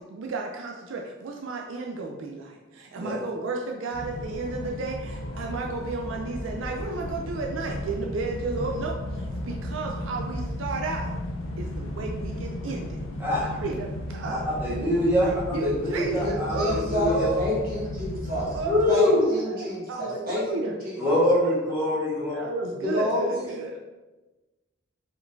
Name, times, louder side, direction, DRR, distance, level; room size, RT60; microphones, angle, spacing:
voice 1, 0.0-11.1 11.6-13.0 13.3-14.4 15.2-16.8 17.1-17.5 18.5-20.8 22.3-23.8, right 3 dB, 70° right, 1 dB, 0.4 m, -33 dB
sound 1, 3.9-18.9, left 1 dB, 75° left, 0.6 m, -34 dB
voice 2, 14.3-17.3 18.6-19.2 21.0-22.3, left 1 dB, 10° right, -9 dB, 1.3 m, -24 dB
voice 3, 16.2-18.6 18.9-21.2 22.8-23.5, left 1 dB, 45° right, -5 dB, 1.3 m, -29 dB
4.7 x 3.7 x 2.6 m, 1.2 s
head